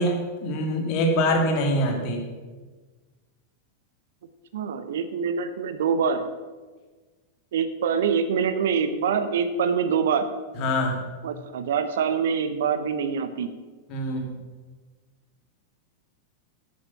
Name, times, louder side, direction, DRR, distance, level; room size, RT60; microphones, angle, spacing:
voice 1, 0.0-2.2 10.6-11.0 13.9-14.3, equal, 40° left, 2 dB, 2.4 m, -24 dB
voice 2, 4.5-6.2 7.5-10.3 11.2-13.5, right 6 dB, 60° right, 11 dB, 0.8 m, -25 dB
11.0 x 8.5 x 5.8 m, 1.3 s
figure-of-eight pair, 90°, 0 cm